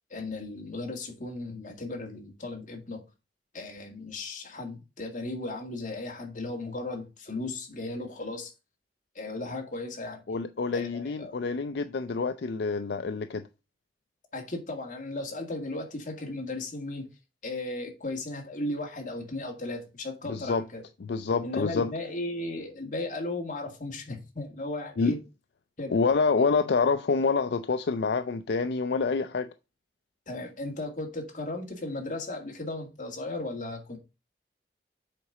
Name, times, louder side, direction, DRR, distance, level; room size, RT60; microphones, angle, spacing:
voice 1, 0.1-3.0 3.5-8.5 9.2-10.2 10.7-11.4 14.3-17.0 17.4-20.8 21.4-25.2 25.8-26.0 30.3-34.0, left 2 dB, 45° left, 2.0 m, -36 dB
voice 2, 10.3-13.4 20.2-20.6 21.0-21.9 25.0-25.2 25.9-29.5, left 4 dB, 70° left, 0.4 m, -27 dB
7.5 x 4.1 x 4.9 m
head